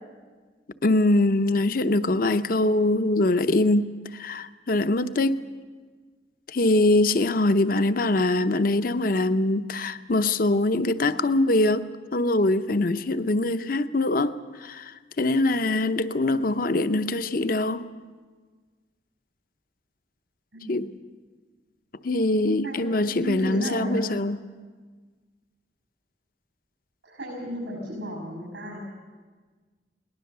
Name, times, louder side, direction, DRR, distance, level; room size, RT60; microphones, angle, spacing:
voice 1, 0.8-3.9 4.1-5.4 6.5-11.9 12.1-14.3 14.6-17.9 20.7-20.9 22.0-24.4, left 2 dB, 50° left, 0.7 m, -23 dB
voice 2, 23.2-24.0 27.0-28.8, equal, 90° right, 6.2 m, -33 dB
21.5 x 19.5 x 6.8 m
head